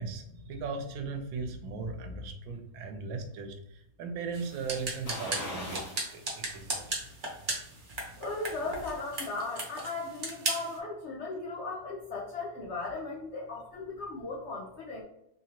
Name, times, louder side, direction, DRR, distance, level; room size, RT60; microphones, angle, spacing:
voice 1, 0.0-6.9, right 4 dB, 80° right, 5 dB, 1.4 m, -38 dB
sound 1, 4.3-10.8, right 2 dB, 45° right, 0.7 m, -37 dB
sound 2, 5.1-6.1 6.5-6.6 8.1-8.9 9.3-9.4, left 1 dB, 60° left, 1.6 m, -40 dB
voice 2, 8.2-15.0, left 3 dB, 85° left, -3 dB, 0.6 m, -37 dB
3.8 x 2.9 x 2.8 m, 0.83 s
omnidirectional pair, 2.2 m